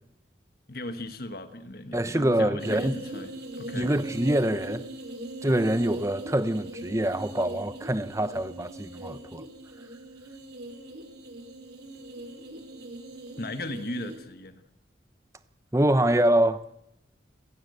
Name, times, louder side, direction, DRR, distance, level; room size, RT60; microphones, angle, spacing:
voice 1, 0.7-3.9 13.4-14.6, left 1 dB, 55° left, 1.4 m, -37 dB
voice 2, 1.9-3.0 3.7-4.8 5.4-9.4 15.7-16.6, right 1 dB, 15° right, 0.9 m, -25 dB
sound 1, 2.6-14.2, right 1 dB, 60° right, 4.5 m, -40 dB
28.5 x 17.0 x 8.1 m
head